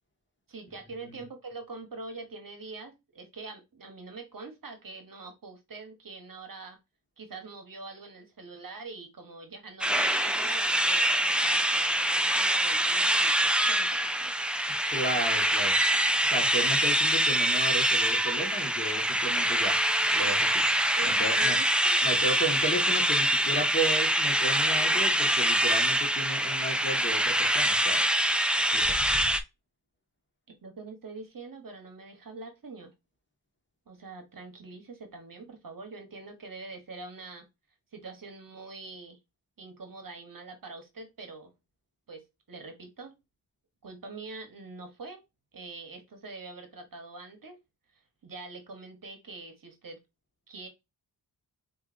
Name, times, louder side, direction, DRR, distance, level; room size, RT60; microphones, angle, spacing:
voice 1, 0.5-6.8 7.2-14.3 21.0-22.0 30.5-32.9 33.9-37.4 37.9-39.2 39.6-41.5 42.1-43.1 43.8-45.2 45.5-47.5 48.2-50.0 50.5-50.7, right 3 dB, 55° right, 6 dB, 1.0 m, -44 dB
sound 1, 9.8-29.4, right 1 dB, 5° right, 0.4 m, -25 dB
voice 2, 14.9-15.8 16.2-19.8 20.1-20.6 21.0-21.6 22.0-28.0 28.7-29.0, right 1 dB, 30° left, 2 dB, 1.4 m, -34 dB
4.7 x 2.6 x 2.5 m, 0.23 s
cardioid pair, 55°, 40 cm